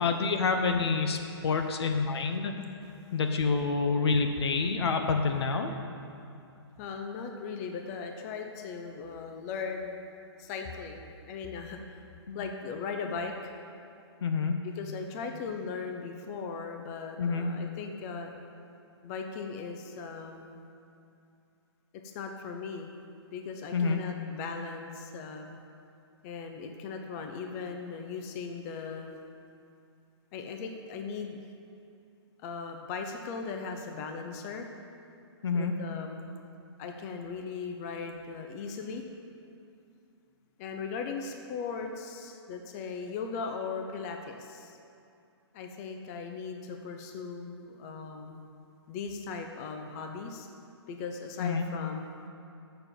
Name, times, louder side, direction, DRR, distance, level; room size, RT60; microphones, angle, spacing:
voice 1, 0.0-2.5 3.1-5.7 12.3-12.4 14.2-14.6 17.2-17.5 23.7-24.0 35.4-35.7 51.4-51.7, left 4 dB, 65° left, 5 dB, 0.9 m, -27 dB
voice 2, 6.8-10.0 10.4-12.0 12.3-13.5 14.6-18.3 19.0-20.6 22.0-22.9 23.3-25.6 26.2-29.2 30.3-31.4 32.4-34.7 35.5-36.3 36.8-39.0 40.6-44.8 45.5-48.5 48.9-50.5 50.9-52.0, left 5 dB, 35° left, 4 dB, 0.8 m, -38 dB
6.7 x 6.6 x 7.3 m, 2.6 s
hypercardioid pair, 135°, 14 cm